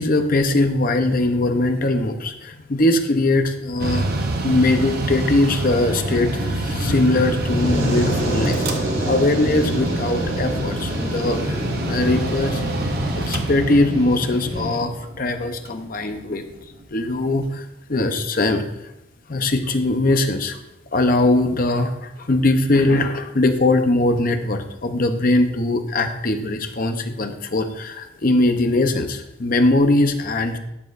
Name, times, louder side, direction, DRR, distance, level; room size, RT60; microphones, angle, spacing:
voice 1, 0.0-4.1 4.4-12.6 13.1-16.4 16.9-18.6 19.3-20.6 20.9-30.6, left 2 dB, 45° left, 6 dB, 0.7 m, -21 dB
Mechanical fan, 3.8-17.1, right 2 dB, 50° right, 0.8 m, -28 dB
Fire, 7.1-14.8, equal, 75° right, 2.8 m, -26 dB
Musical instrument, 7.4-13.4, right 6 dB, 20° right, 1.9 m, -37 dB
12.0 x 7.2 x 2.5 m, 0.89 s
head